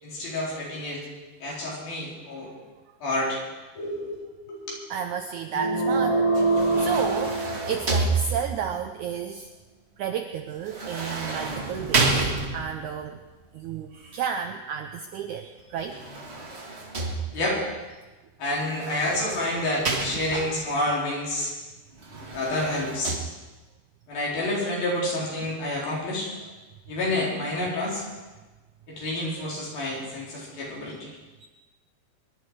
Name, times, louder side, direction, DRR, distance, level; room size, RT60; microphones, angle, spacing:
voice 1, 0.0-1.0 1.4-2.5 3.0-3.4 3.8-4.2 4.5-4.8 17.3-17.6 18.4-21.5 22.2-23.2 24.1-26.3 26.9-28.0 28.9-31.2, left 1 dB, 70° left, -4 dB, 6.0 m, -29 dB
voice 2, 4.9-6.2 6.5-9.5 10.0-13.2 13.5-16.0 31.4-31.5, right 7 dB, 80° right, 5 dB, 1.8 m, -32 dB
sound 1, 5.5-8.2, right 2 dB, 90° left, 4.4 m, -24 dB
sound 2, 6.3-8.8 10.6-12.9 15.8-17.6 18.6-20.6 22.0-23.2, right 3 dB, 60° right, 0.6 m, -29 dB
24.0 x 11.5 x 4.9 m, 1.2 s
omnidirectional pair, 4.3 m